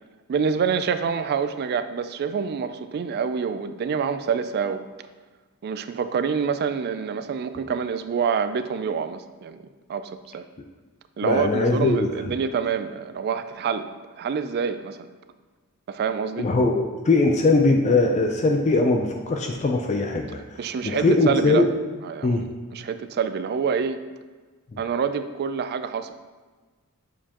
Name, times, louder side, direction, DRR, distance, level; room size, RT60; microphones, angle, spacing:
voice 1, 0.3-4.8 5.6-9.6 9.9-10.5 11.2-13.9 14.2-15.1 15.9-16.5 20.6-21.7 22.0-22.4 22.7-24.0 24.8-26.1, right 6 dB, 45° right, 10 dB, 0.3 m, -26 dB
voice 2, 11.2-12.1 16.4-21.7 22.2-22.4 24.7-24.8, left 2 dB, 30° left, 3 dB, 0.4 m, -21 dB
7.1 x 4.6 x 2.9 m, 1.3 s
head